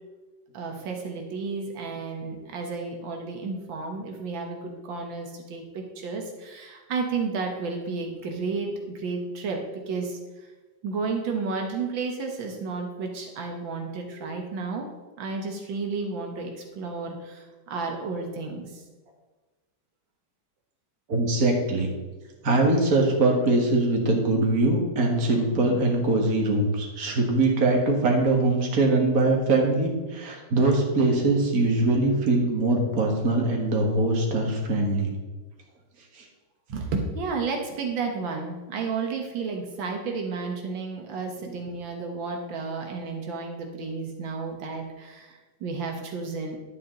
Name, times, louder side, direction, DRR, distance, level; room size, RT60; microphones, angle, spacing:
voice 1, 0.5-10.5 10.8-14.9 15.2-18.8 36.7-46.6, right 4 dB, 85° right, 2 dB, 1.9 m, -32 dB
voice 2, 21.1-21.9 22.4-35.1 36.2-36.3, right 2 dB, 50° right, 0 dB, 2.1 m, -22 dB
11.5 x 8.4 x 3.8 m, 1.3 s
omnidirectional pair, 2.0 m